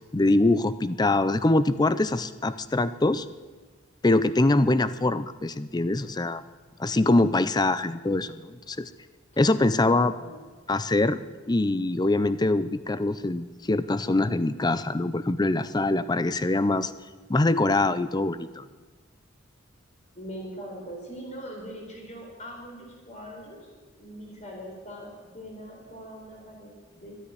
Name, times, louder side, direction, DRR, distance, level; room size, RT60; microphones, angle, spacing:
voice 1, 0.1-3.3 4.0-6.4 6.8-8.9 9.4-10.1 10.7-11.2 11.5-16.9 17.3-18.6, left 2 dB, 20° left, 14 dB, 0.5 m, -23 dB
voice 2, 7.1-7.5 9.8-10.5 20.1-23.7 24.0-27.3, equal, 35° left, -1 dB, 4.4 m, -42 dB
13.0 x 10.0 x 9.5 m, 1.4 s
head